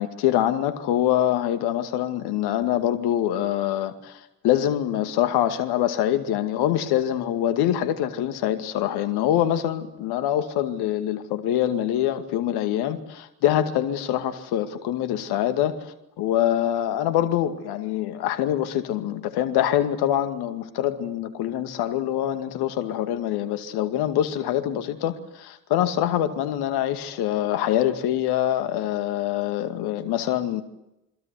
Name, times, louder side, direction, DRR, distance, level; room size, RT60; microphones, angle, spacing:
voice 1, 0.0-30.6, left 11 dB, 60° left, 2.3 m, -24 dB
27.0 x 24.0 x 8.3 m
figure-of-eight pair, 50°, 44 cm